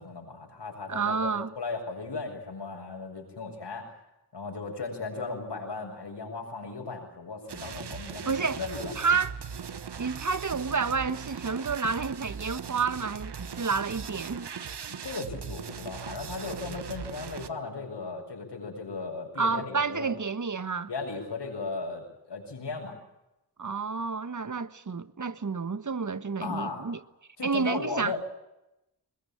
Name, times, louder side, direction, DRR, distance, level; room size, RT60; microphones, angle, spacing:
voice 1, 0.0-3.9 4.3-8.9 15.0-20.1 20.9-23.0 26.4-26.9 27.4-28.2, left 4 dB, 75° left, 7.3 m, -36 dB
voice 2, 0.9-1.5 8.2-8.6 9.0-9.3 10.0-14.5 19.4-20.9 23.6-27.0 27.4-28.1, right 5 dB, 45° right, 1.3 m, -29 dB
sound 1, 7.5-17.5, right 6 dB, 75° right, 1.3 m, -39 dB
21.5 x 21.5 x 8.9 m
cardioid pair, 50°, 41 cm